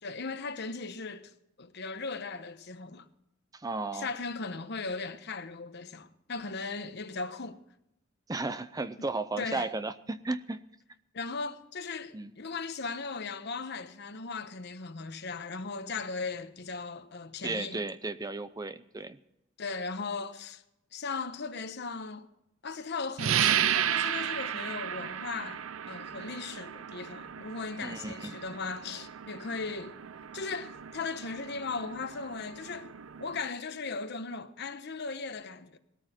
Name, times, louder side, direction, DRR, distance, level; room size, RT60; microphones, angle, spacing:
voice 1, 0.0-1.3 1.6-3.1 3.9-7.6 9.0-9.1 9.4-9.7 11.1-17.8 19.6-20.6 20.9-22.3 22.6-30.0 30.3-32.9 33.2-35.8, left 4 dB, 55° left, 1.1 m, -37 dB
voice 2, 3.5-4.1 8.3-10.6 12.1-12.3 17.4-19.2 27.8-28.4, right 3 dB, 20° right, 0.5 m, -34 dB
sound 1, 23.2-33.5, right 9 dB, 85° right, 0.5 m, -34 dB
19.0 x 14.0 x 4.4 m
head